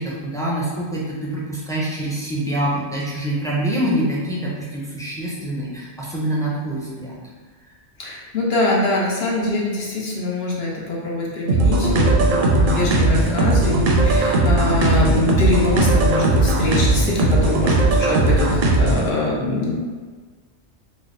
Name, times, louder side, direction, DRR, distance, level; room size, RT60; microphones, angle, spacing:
voice 1, 0.0-7.1, right 1 dB, 5° left, -5 dB, 0.3 m, -25 dB
voice 2, 8.0-19.7, left 2 dB, 70° left, -4 dB, 1.0 m, -23 dB
sound 1, 11.5-19.1, right 2 dB, 60° right, 0.6 m, -18 dB
3.3 x 2.1 x 3.7 m, 1.5 s
omnidirectional pair, 1.1 m